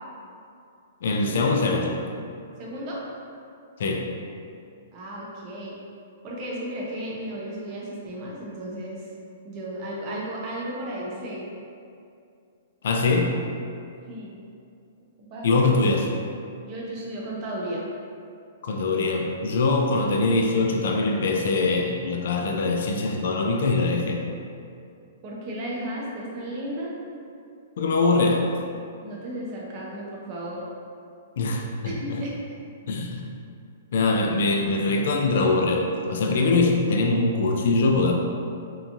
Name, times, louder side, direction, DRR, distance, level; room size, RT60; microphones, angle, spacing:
voice 1, 1.0-2.0 3.8-4.1 12.8-13.4 15.4-16.1 18.6-24.2 27.8-28.5 31.4-32.2 32.9-33.2 33.9-38.1, left 3 dB, 65° left, 2 dB, 0.3 m, -23 dB
voice 2, 2.6-3.0 4.9-5.8 6.2-9.1 9.4-11.4 14.1-14.3 15.3-15.6 16.6-17.8 25.2-26.9 29.0-30.6 31.8-32.4, right 1 dB, 35° right, -4 dB, 0.6 m, -34 dB
2.8 x 2.3 x 2.5 m, 2.4 s
hypercardioid pair, 150°, 0 cm